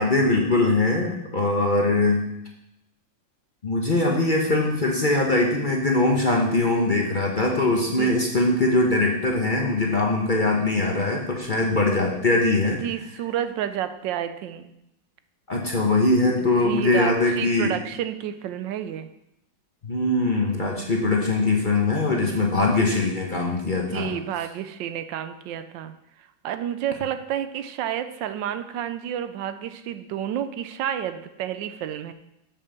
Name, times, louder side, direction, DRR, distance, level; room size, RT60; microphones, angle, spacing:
voice 1, 0.0-2.2 3.6-12.8 15.5-17.7 19.8-24.1, left 2 dB, 35° left, -1 dB, 0.9 m, -22 dB
voice 2, 12.6-14.7 16.4-19.1 22.2-22.8 23.9-25.9 26.4-32.1, right 10 dB, 85° right, 10 dB, 1.3 m, -30 dB
7.0 x 5.6 x 6.9 m, 0.85 s
omnidirectional pair, 2.0 m